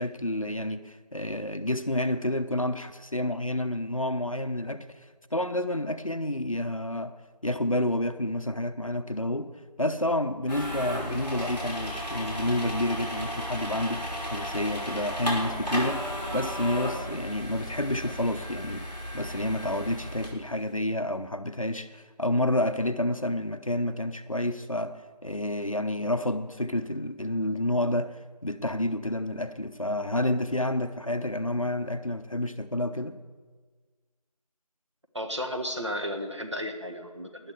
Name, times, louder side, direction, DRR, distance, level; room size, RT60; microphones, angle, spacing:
voice 1, 0.0-4.9 5.3-7.1 7.4-9.5 9.8-16.0 16.3-33.2, left 1 dB, 50° left, 0.9 m, -29 dB
sound 1, 10.5-20.3, equal, 5° left, 3.2 m, -34 dB
voice 2, 35.1-37.5, equal, 45° right, 1.5 m, -33 dB
19.0 x 11.0 x 4.8 m
figure-of-eight pair, 175°, 21 cm